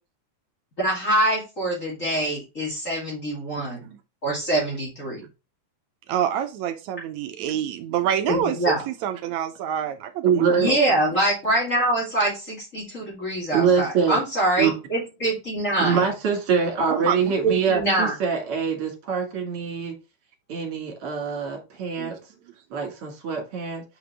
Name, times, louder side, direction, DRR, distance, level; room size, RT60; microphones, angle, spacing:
voice 1, 0.8-3.8 4.2-5.2 8.3-8.8 10.6-16.0 17.4-18.1, right 1 dB, 25° left, 2.3 m, -24 dB
voice 2, 3.6-4.0 6.1-11.1 16.9-17.3 22.0-22.1, right 9 dB, 80° right, 1.7 m, -27 dB
voice 3, 10.2-10.7 13.5-14.2 14.6-14.7 15.8-19.9 20.5-22.2 22.7-23.8, right 6 dB, 50° right, 2.5 m, -24 dB
5.7 x 5.4 x 3.4 m
omnidirectional pair, 3.9 m